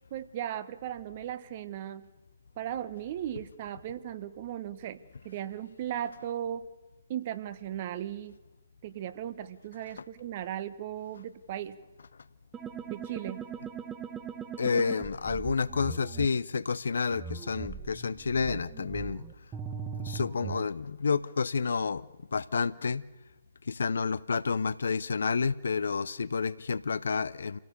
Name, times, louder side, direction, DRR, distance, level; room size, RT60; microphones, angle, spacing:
voice 1, 0.1-2.1 2.6-6.7 7.1-8.4 8.8-11.8 12.9-13.5, right 11 dB, 35° right, 1.1 m, -37 dB
sound 1, 12.5-16.3 17.1-20.7, right 6 dB, 15° right, 1.1 m, -40 dB
voice 2, 14.6-19.3 20.0-23.1 23.6-27.6, left 5 dB, 60° left, 0.7 m, -30 dB
27.0 x 17.0 x 6.7 m
figure-of-eight pair, 135°, 0 cm